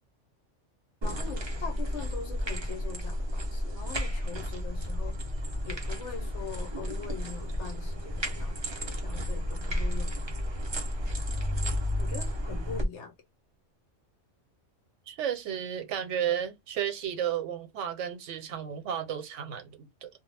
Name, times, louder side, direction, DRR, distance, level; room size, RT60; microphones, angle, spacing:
voice 1, 1.0-5.2 5.6-10.1 12.0-13.1, left 7 dB, 75° left, 1.0 m, -42 dB
sound 1, 1.0-12.8, equal, 35° right, 0.4 m, -32 dB
voice 2, 15.1-20.1, right 9 dB, 80° right, 1.0 m, -33 dB
2.3 x 2.0 x 3.2 m
omnidirectional pair, 1.2 m